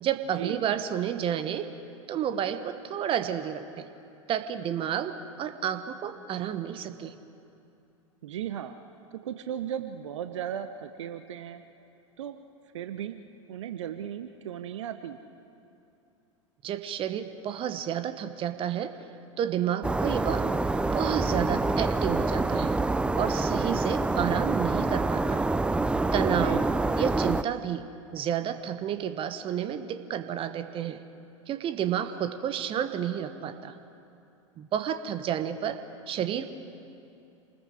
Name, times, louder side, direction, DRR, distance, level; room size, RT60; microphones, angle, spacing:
voice 1, 0.0-1.7 2.1-3.9 4.3-7.2 16.6-18.9 19.4-20.5 20.9-22.8 23.1-25.5 26.1-26.6 27.0-31.0 31.5-33.8 34.6-35.8 36.1-36.5, right 9 dB, 35° right, 10 dB, 1.3 m, -31 dB
voice 2, 8.2-8.7 9.1-11.6 12.2-12.4 12.7-13.2 13.5-15.2 26.4-26.6, right 10 dB, 65° right, 9 dB, 0.9 m, -36 dB
sound 1, 19.8-27.4, right 2 dB, 5° right, 0.4 m, -26 dB
27.5 x 20.0 x 4.9 m, 2.7 s
figure-of-eight pair, 85°, 17 cm